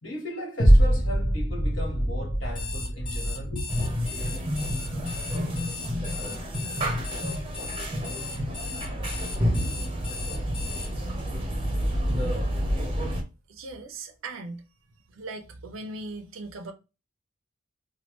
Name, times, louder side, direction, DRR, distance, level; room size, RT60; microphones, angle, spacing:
voice 1, 0.0-3.9, left 1 dB, 80° left, 1.6 m, -36 dB
sound 1, 0.6-9.1 9.6-9.7, equal, 50° left, 1.0 m, -26 dB
Alarm, 2.5-10.9, left 5 dB, 25° left, 1.1 m, -38 dB
sound 2, 3.7-13.2, equal, 25° right, 0.6 m, -29 dB
voice 2, 13.5-14.6 15.1-16.7, right 3 dB, 85° right, 0.6 m, -38 dB
3.1 x 2.3 x 3.0 m
head